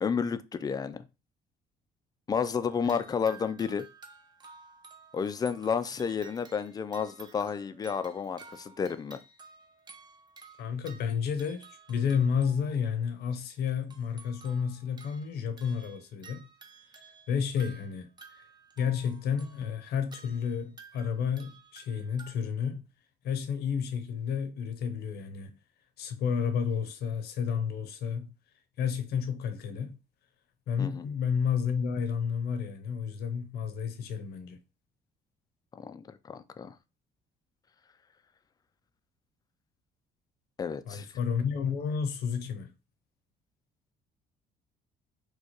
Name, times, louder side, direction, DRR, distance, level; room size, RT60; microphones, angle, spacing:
voice 1, 0.0-1.0 2.3-3.9 5.1-9.2 30.8-31.1 35.7-36.7 40.6-41.1, left 6 dB, 25° left, 0.3 m, -31 dB
sound 1, 2.7-12.9 13.8-22.3, right 4 dB, 25° right, 0.6 m, -53 dB
voice 2, 10.6-16.5 17.3-18.1 18.3-18.4 18.8-22.8 23.2-25.6 26.0-28.3 28.8-30.0 30.7-34.6 40.9-42.7, left 7 dB, 70° left, 0.7 m, -31 dB
4.4 x 2.2 x 3.0 m
cardioid pair, 110°, 17 cm